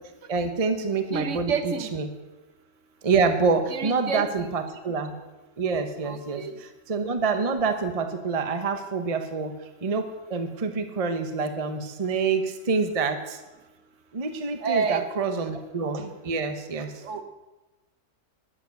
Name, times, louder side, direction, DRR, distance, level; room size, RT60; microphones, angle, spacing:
voice 1, 0.3-2.1 3.0-5.1 5.6-9.5 9.8-13.4 14.1-16.9, right 4 dB, 25° right, 8 dB, 0.9 m, -27 dB
voice 2, 1.1-1.9 3.7-4.5 6.0-6.6 14.6-15.0 17.0-17.2, right 5 dB, 50° right, 9 dB, 1.3 m, -29 dB
12.0 x 10.5 x 6.6 m, 1.1 s
omnidirectional pair, 1.8 m